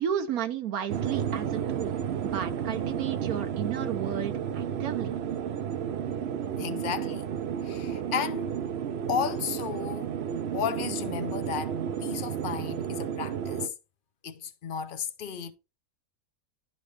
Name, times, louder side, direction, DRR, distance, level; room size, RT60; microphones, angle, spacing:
voice 1, 0.0-1.9 2.2-5.1, right 9 dB, 75° right, 1.2 m, -33 dB
sound 1, 0.9-13.7, right 8 dB, 60° right, 0.7 m, -32 dB
voice 2, 6.6-7.3 7.6-8.5 9.1-10.1 10.5-13.7 14.2-15.5, left 7 dB, 45° left, 0.8 m, -34 dB
11.5 x 4.1 x 3.2 m
omnidirectional pair, 1.5 m